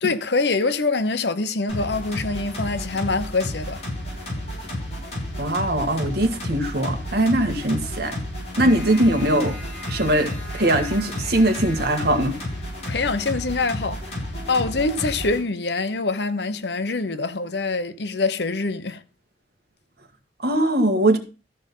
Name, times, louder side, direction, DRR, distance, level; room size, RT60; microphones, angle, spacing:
voice 1, 0.0-3.8 8.6-8.8 12.9-19.0, left 3 dB, 70° left, 1.0 m, -25 dB
Trance Train, 1.7-15.4, left 1 dB, 40° left, 6.2 m, -31 dB
voice 2, 5.4-8.2 8.6-9.5 9.9-12.3 20.4-21.2, right 1 dB, 60° right, 1.8 m, -21 dB
14.0 x 5.3 x 5.5 m
head